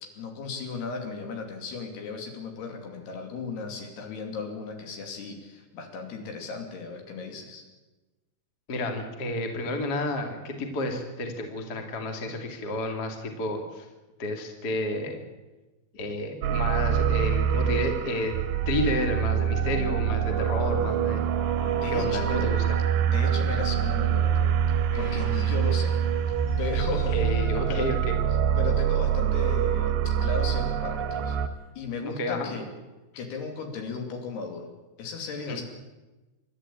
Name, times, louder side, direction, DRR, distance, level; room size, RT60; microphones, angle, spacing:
voice 1, 0.0-7.6 21.7-22.4 23.0-26.0 26.6-27.4 27.7-27.9 28.6-31.4 31.8-32.7 33.2-34.7 35.0-35.6, left 4 dB, 70° left, 3 dB, 4.7 m, -36 dB
voice 2, 8.7-13.9 14.2-15.2 15.9-18.3 18.6-21.2 21.9-22.6 27.1-28.2 32.0-32.6 35.5-35.6, left 1 dB, 30° left, 3 dB, 2.4 m, -31 dB
sound 1, 16.4-31.5, right 9 dB, 80° right, 3.3 m, -25 dB
sound 2, 24.9-27.4 28.1-28.4 28.7-28.8 29.7-30.0 31.6-31.7, left 3 dB, 50° left, 5.0 m, -49 dB
28.0 x 12.5 x 8.6 m, 1.2 s
omnidirectional pair, 5.0 m